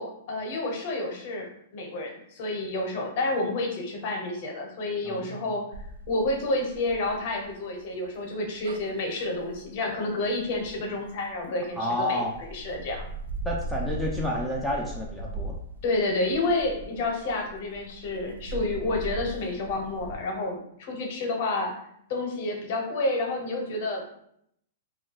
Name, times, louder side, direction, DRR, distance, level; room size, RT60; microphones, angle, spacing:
voice 1, 0.0-1.5 1.7-5.6 6.1-13.1 15.8-21.7 22.1-24.2, left 2 dB, 50° left, 1 dB, 0.7 m, -29 dB
voice 2, 5.1-5.4 11.8-12.3 13.5-15.6, left 1 dB, ahead, -3 dB, 0.3 m, -30 dB
sound 1, 5.7-11.7 12.2-20.2, right 2 dB, 90° right, 0.4 m, -39 dB
2.2 x 2.2 x 3.8 m, 0.72 s
hypercardioid pair, 150°, 0 cm